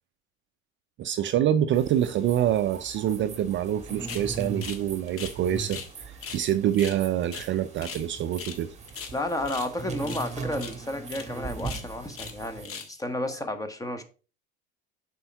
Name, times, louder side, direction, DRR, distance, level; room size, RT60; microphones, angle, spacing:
voice 1, 1.0-5.8 6.0-8.7, right 11 dB, 35° right, 0.4 m, -26 dB
sound 1, 1.7-12.7, right 4 dB, 20° right, 1.6 m, -40 dB
sound 2, 4.1-4.3 4.6-4.8 5.1-5.9 6.2-6.4 6.7-8.1 8.3-8.6 8.9-9.7 10.0-10.3 10.5-10.8 11.1-11.3 11.6-12.4 12.6-13.0, left 6 dB, 40° left, 1.5 m, -39 dB
voice 2, 9.1-14.0, left 1 dB, 10° left, 1.2 m, -32 dB
6.8 x 4.4 x 4.6 m
hypercardioid pair, 85°, 33 cm